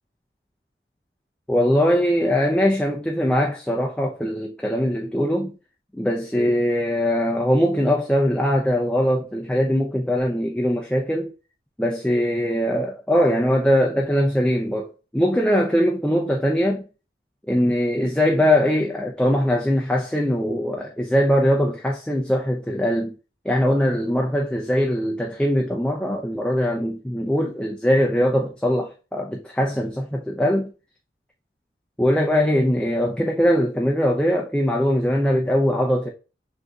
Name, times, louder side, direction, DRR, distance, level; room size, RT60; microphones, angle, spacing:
voice 1, 1.5-5.5 5.9-11.3 11.8-16.8 17.5-23.1 23.4-30.7 32.0-36.1, equal, 5° left, 0.4 m, -21 dB
6.3 x 2.7 x 2.3 m
head